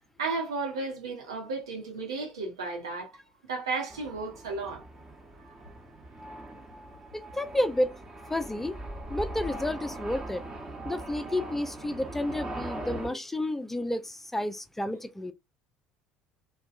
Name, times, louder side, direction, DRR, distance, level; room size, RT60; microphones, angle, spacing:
voice 1, 0.2-3.1 3.5-4.8, right 3 dB, 80° right, 0.9 m, -33 dB
sound 1, 3.9-13.1, right 1 dB, 30° right, 1.1 m, -40 dB
voice 2, 7.1-8.0 8.3-8.8 9.1-10.4 10.8-15.3, left 1 dB, 10° left, 0.4 m, -31 dB
2.6 x 2.2 x 2.4 m
hypercardioid pair, 60°, 3 cm